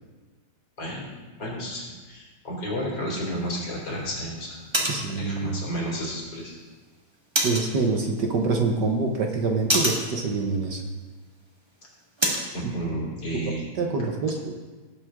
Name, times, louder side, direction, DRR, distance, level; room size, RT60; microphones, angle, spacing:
voice 1, 0.8-1.1 1.4-6.7 12.5-13.7, equal, 55° left, -3 dB, 3.7 m, -32 dB
sound 1, 3.1-12.5, right 1 dB, 15° right, 1.6 m, -32 dB
voice 2, 4.9-5.6 7.4-10.8 12.6-13.0 13.8-14.5, right 3 dB, 55° right, 2 dB, 1.6 m, -26 dB
18.0 x 7.9 x 3.7 m, 1.4 s
omnidirectional pair, 2.3 m